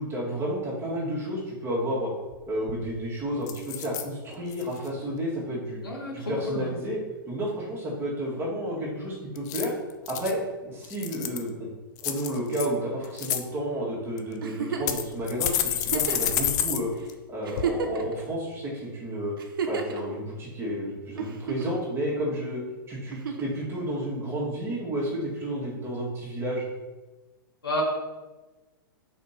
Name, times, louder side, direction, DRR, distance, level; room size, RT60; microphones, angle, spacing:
voice 1, 0.0-2.1 2.5-5.8 6.1-7.0 7.3-9.7 10.1-11.7 12.0-16.9 17.3-19.3 19.7-22.6 22.9-26.7, equal, 20° right, -5 dB, 1.9 m, -31 dB
sound 1, 2.3-2.4 2.7-3.0 3.5-4.0 4.5-4.9 9.3-10.3 10.8-11.5 12.0-12.7 13.0-13.4 14.2-14.3 14.9-16.8 17.1-17.2 17.6-17.7, left 10 dB, 50° left, 0.6 m, -29 dB
voice 2, 5.8-6.7 27.6-27.8, left 1 dB, 90° left, -1 dB, 1.9 m, -30 dB
Giggle, 14.4-15.0 15.8-16.3 17.0-17.1 17.4-18.2 19.4-20.0 21.2-21.8 23.1-23.6 25.1-25.2, right 6 dB, 75° right, 0.9 m, -31 dB
4.4 x 4.1 x 5.6 m, 1.2 s
hypercardioid pair, 115°, 12 cm